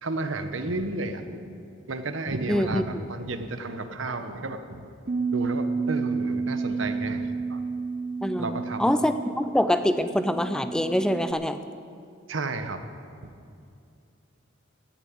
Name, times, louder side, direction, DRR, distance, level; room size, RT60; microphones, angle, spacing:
voice 1, 0.0-1.4 1.9-4.8 5.3-7.6 8.4-8.9 12.3-12.8 13.2-13.3, right 2 dB, 80° right, 9 dB, 1.1 m, -32 dB
voice 2, 2.5-2.8 8.2-11.6, equal, 5° left, 10 dB, 0.4 m, -25 dB
Bass guitar, 5.1-11.3, right 4 dB, 40° right, 0.6 m, -31 dB
17.0 x 7.0 x 8.8 m, 2.5 s
head